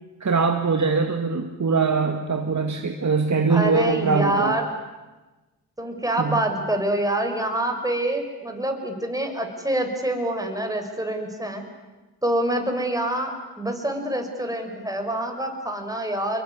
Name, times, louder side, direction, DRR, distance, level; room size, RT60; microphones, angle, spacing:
voice 1, 0.2-4.6 6.2-6.4, right 4 dB, 45° right, 4 dB, 2.2 m, -22 dB
voice 2, 3.5-4.7 5.8-11.6 12.2-16.4, right 1 dB, 10° right, 4 dB, 6.1 m, -26 dB
24.5 x 23.0 x 9.9 m, 1.2 s
cardioid pair, 55°, 40 cm